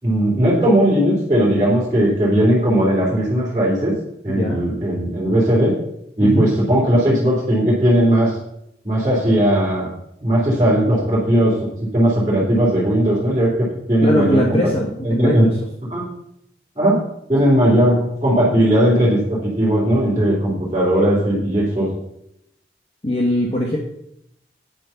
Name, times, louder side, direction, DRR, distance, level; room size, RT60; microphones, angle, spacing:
voice 1, 0.0-3.9 4.2-5.7 6.2-8.3 8.8-9.9 10.2-11.5 11.9-14.6 15.0-15.5 15.8-16.1 16.7-17.0 17.3-21.9, right 1 dB, 20° right, -11 dB, 3.3 m, -17 dB
voice 2, 4.3-4.6 6.2-6.5 14.0-15.5 23.0-23.8, left 1 dB, 30° left, -1 dB, 1.3 m, -21 dB
9.4 x 7.6 x 5.8 m, 0.78 s
head